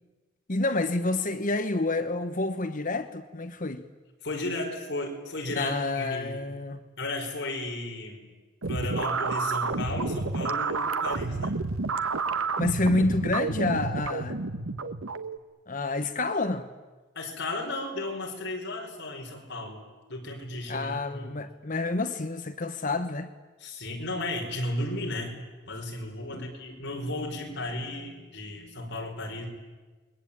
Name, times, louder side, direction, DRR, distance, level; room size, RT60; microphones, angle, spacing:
voice 1, 0.5-3.9 5.6-6.8 12.6-14.4 15.7-16.7 20.7-23.3 26.3-26.5, left 2 dB, 40° left, 1.1 m, -28 dB
voice 2, 4.2-6.5 7.0-8.3 8.7-11.6 17.2-19.8 20.1-21.3 23.6-25.4 25.7-29.5, left 1 dB, 55° left, 5.2 m, -34 dB
sound 1, 8.6-15.4, right 3 dB, 85° right, 1.3 m, -30 dB
29.5 x 22.5 x 8.8 m
head